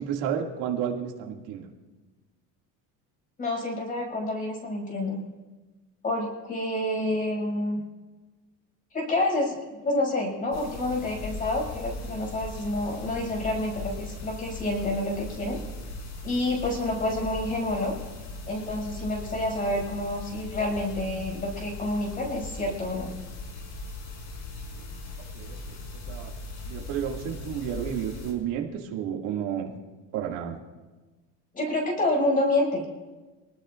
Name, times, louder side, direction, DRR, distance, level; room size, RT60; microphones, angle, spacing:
voice 1, 0.0-1.7 25.3-25.8 26.1-26.3 26.7-29.7 30.1-30.6, right 9 dB, 75° right, 0 dB, 2.4 m, -31 dB
voice 2, 3.4-5.2 6.0-7.8 8.9-9.6 9.8-15.6 16.2-17.9 18.5-23.1 31.5-32.8, left 1 dB, 25° left, 0 dB, 6.4 m, -28 dB
sound 1, 10.5-28.3, left 2 dB, 75° left, 5.8 m, -39 dB
27.0 x 19.5 x 2.5 m, 1.2 s
cardioid pair, 160°, 35 cm